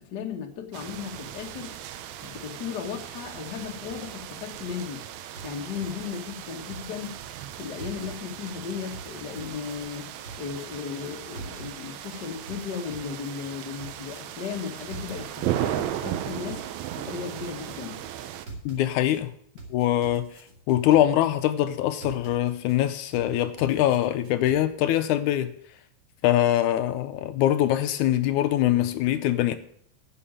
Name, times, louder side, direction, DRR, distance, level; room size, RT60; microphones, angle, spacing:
voice 1, 0.0-1.7 2.2-5.0 5.4-7.2 7.6-10.1 10.4-16.6 17.0-18.0, left 7 dB, 45° left, 1.5 m, -36 dB
sound 1, 0.7-18.5, right 11 dB, 75° right, 1.9 m, -36 dB
sound 2, 5.3-7.1 7.8-8.5 8.9-10.6 11.3-12.1 12.5-14.2 14.9-15.6 16.0-17.7 18.5-19.2 19.6-21.2 22.0-22.8 23.1-24.6, right 3 dB, 35° right, 3.0 m, -43 dB
voice 2, 18.7-19.3 19.7-20.3 20.7-25.5 26.2-29.6, left 12 dB, 80° left, 2.0 m, -23 dB
9.9 x 6.4 x 8.7 m
omnidirectional pair, 3.6 m